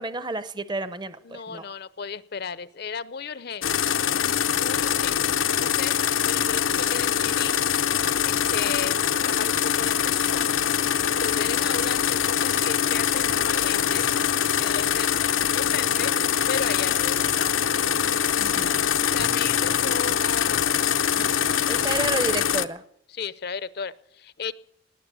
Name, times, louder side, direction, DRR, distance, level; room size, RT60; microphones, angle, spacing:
voice 1, 0.0-1.7 18.4-18.8 21.7-22.8, right 2 dB, 20° right, 14 dB, 0.7 m, -31 dB
voice 2, 1.2-3.7 4.5-5.2 5.6-5.9 6.3-7.6 8.2-10.5 11.2-14.1 14.6-16.1 16.5-17.5 19.1-21.0 22.0-22.1 23.1-24.5, left 6 dB, 50° left, 17 dB, 0.6 m, -34 dB
sound 1, 3.6-22.7, left 9 dB, 85° left, 0.8 m, -23 dB
sound 2, 13.6-22.1, right 1 dB, 85° right, 2.0 m, -47 dB
19.0 x 10.5 x 6.9 m, 0.74 s
head